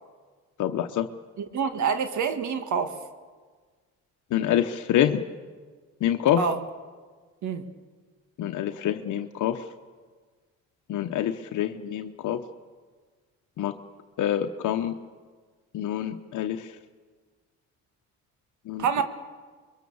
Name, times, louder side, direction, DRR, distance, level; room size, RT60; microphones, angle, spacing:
voice 1, 0.6-1.1 4.3-5.2 6.0-6.5 8.4-9.6 10.9-12.4 13.6-13.7 14.2-14.9 15.7-16.7 18.7-19.0, left 11 dB, 75° left, 6 dB, 1.0 m, -26 dB
voice 2, 1.4-3.0 6.4-6.6 7.4-7.7 18.8-19.0, right 6 dB, 70° right, 8 dB, 1.9 m, -26 dB
26.5 x 22.5 x 7.1 m, 1.5 s
cardioid pair, 90°, 30 cm